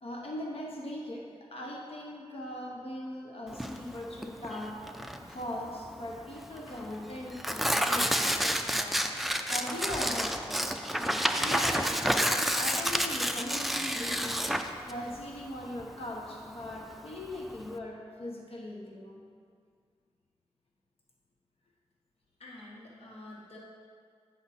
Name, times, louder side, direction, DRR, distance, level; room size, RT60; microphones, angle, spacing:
voice 1, 0.0-4.8 5.3-9.0 9.5-12.1 12.6-14.4 14.9-19.2, left 1 dB, 65° left, -1 dB, 0.9 m, -40 dB
Tearing, 3.5-17.8, equal, ahead, 0.5 m, -30 dB
voice 2, 22.4-23.6, left 2 dB, 80° left, -3 dB, 1.2 m, -48 dB
9.4 x 5.9 x 4.2 m, 2.1 s
wide cardioid pair, 75°, 11 cm